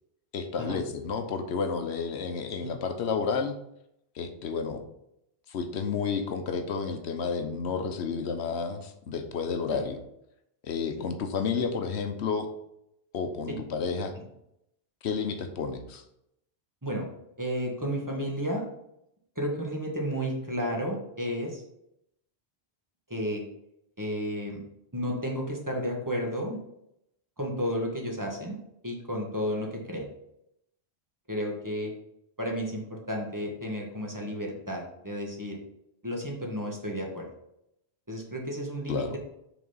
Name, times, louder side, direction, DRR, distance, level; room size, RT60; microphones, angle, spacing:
voice 1, 0.3-3.6 4.1-4.8 5.5-10.0 10.6-12.5 13.1-14.1 15.0-16.0 38.9-39.2, left 5 dB, 80° left, 7 dB, 1.0 m, -31 dB
voice 2, 17.4-18.6 19.3-21.6 23.1-23.4 24.0-24.6 24.9-26.6 27.4-28.6 28.8-30.1 31.3-31.9 32.4-35.6 36.0-37.2 38.1-39.2, equal, 20° right, -1 dB, 1.3 m, -32 dB
6.0 x 4.1 x 5.5 m, 0.79 s
omnidirectional pair, 1.1 m